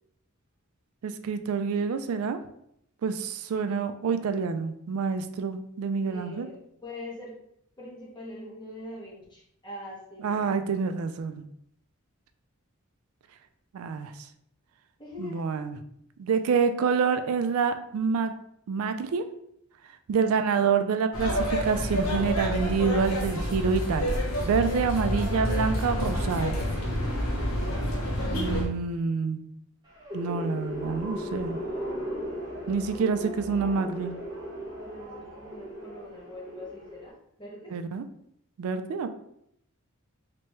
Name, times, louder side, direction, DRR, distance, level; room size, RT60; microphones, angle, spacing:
voice 1, 1.0-2.4 3.0-6.5 10.2-11.5 13.7-14.3 15.2-15.8 16.2-18.3 18.7-19.3 20.1-26.6 28.3-29.4 30.1-31.6 32.7-34.1 37.7-38.0 38.6-39.1, right 5 dB, 75° right, 10 dB, 0.3 m, -27 dB
voice 2, 6.0-7.3 7.8-10.5 15.0-15.5 27.8-28.0 34.8-37.1 37.4-37.7, left 1 dB, 20° left, -6 dB, 1.2 m, -43 dB
sound 1, 21.1-28.6, equal, 70° left, 0.8 m, -28 dB
sound 2, 29.9-37.1, equal, 20° right, 0.9 m, -37 dB
sound 3, 30.7-37.0, right 1 dB, 35° right, 1.2 m, -45 dB
3.3 x 3.1 x 3.1 m, 0.74 s
head